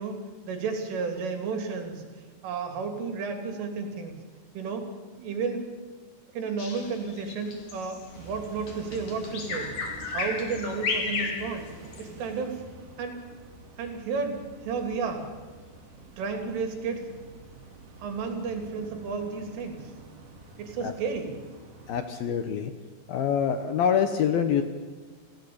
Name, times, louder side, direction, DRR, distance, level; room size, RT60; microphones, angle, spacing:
voice 1, 0.0-2.1 2.4-4.2 4.6-4.9 5.2-5.6 6.3-9.7 10.1-11.7 12.0-12.6 13.0-13.2 13.8-15.3 16.2-17.1 18.0-19.9 20.6-21.3, right 4 dB, 90° right, 5 dB, 5.4 m, -32 dB
Bird vocalization bird call bird song, 6.6-12.1, left 4 dB, 50° left, 4.1 m, -33 dB
sound 1, 8.1-22.0, right 3 dB, 50° right, 5.3 m, -48 dB
voice 2, 21.9-22.7 23.1-24.6, left 8 dB, 70° left, 8 dB, 2.3 m, -25 dB
30.0 x 16.5 x 8.7 m, 1.4 s
omnidirectional pair, 5.5 m